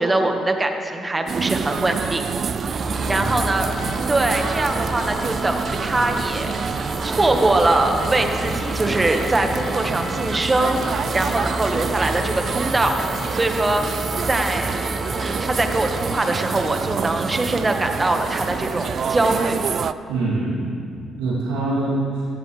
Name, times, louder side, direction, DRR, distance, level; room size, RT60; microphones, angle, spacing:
voice 1, 0.0-2.2 3.1-3.7 4.1-6.5 7.0-13.0 13.3-13.8 14.2-14.7 15.1-19.6, right 2 dB, 25° right, 4 dB, 1.6 m, -22 dB
sound 1, 1.3-19.9, right 6 dB, 55° right, 0.4 m, -27 dB
sound 2, 2.6-18.4, left 1 dB, 60° left, 1.6 m, -38 dB
sound 3, 2.6-16.2, left 1 dB, 10° left, 0.6 m, -32 dB
voice 2, 3.0-3.4 20.1-20.7 21.2-22.3, right 2 dB, 85° right, -6 dB, 3.2 m, -24 dB
15.0 x 14.0 x 3.5 m, 2.5 s
hypercardioid pair, 50°, 0 cm